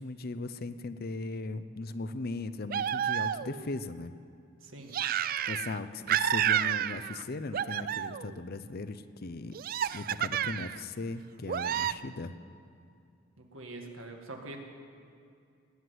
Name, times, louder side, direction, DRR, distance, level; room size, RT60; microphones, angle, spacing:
voice 1, 0.0-4.1 5.4-9.5 9.9-12.3, left 3 dB, 50° left, 12 dB, 0.6 m, -38 dB
sound 1, 2.7-3.7 4.9-5.8 6.1-7.2 7.5-8.3 9.5-10.8 11.5-11.9, right 10 dB, 45° right, 0.3 m, -30 dB
voice 2, 4.6-5.0 13.4-14.6, right 2 dB, 80° right, 3 dB, 1.9 m, -44 dB
19.5 x 8.0 x 9.4 m, 2.4 s
head